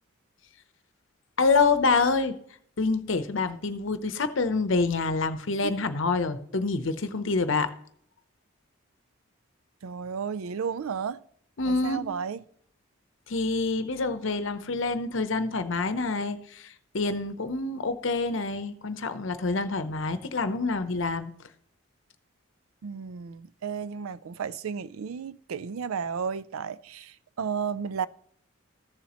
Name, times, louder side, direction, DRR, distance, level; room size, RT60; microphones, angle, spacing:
voice 1, 1.4-2.3 2.8-7.7 11.6-12.1 13.3-21.3, left 3 dB, 65° left, 0.7 m, -27 dB
voice 2, 9.8-11.2 11.7-12.4 22.8-28.1, right 6 dB, 80° right, 0.4 m, -33 dB
14.0 x 7.2 x 3.0 m
head